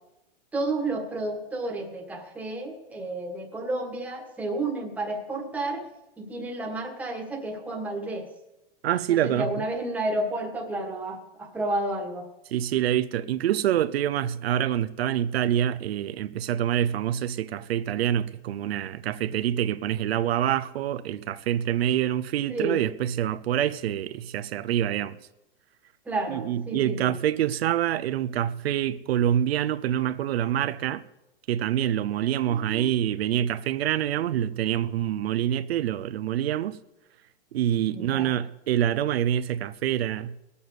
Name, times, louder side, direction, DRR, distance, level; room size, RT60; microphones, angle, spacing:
voice 1, 0.5-5.8 6.2-8.3 9.1-12.3 22.5-22.8 26.0-27.1 32.2-32.9 37.9-38.3, right 2 dB, 5° right, 1.5 m, -31 dB
voice 2, 8.8-9.5 12.5-25.2 26.3-31.0 31.5-36.8 37.5-40.3, right 11 dB, 90° right, 0.8 m, -26 dB
18.5 x 7.1 x 8.0 m
supercardioid pair, 170°, 30 cm